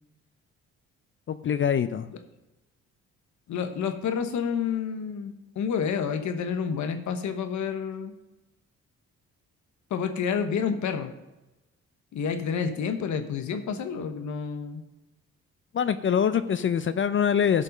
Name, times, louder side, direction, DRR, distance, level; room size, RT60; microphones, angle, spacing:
voice 1, 1.3-2.1 15.7-17.6, left 8 dB, 40° left, 12 dB, 0.5 m, -24 dB
voice 2, 3.5-8.1 9.9-11.1 12.1-14.8, left 6 dB, 70° left, 8 dB, 1.1 m, -29 dB
12.5 x 5.3 x 5.3 m, 1.0 s
cardioid pair, 90°, 30 cm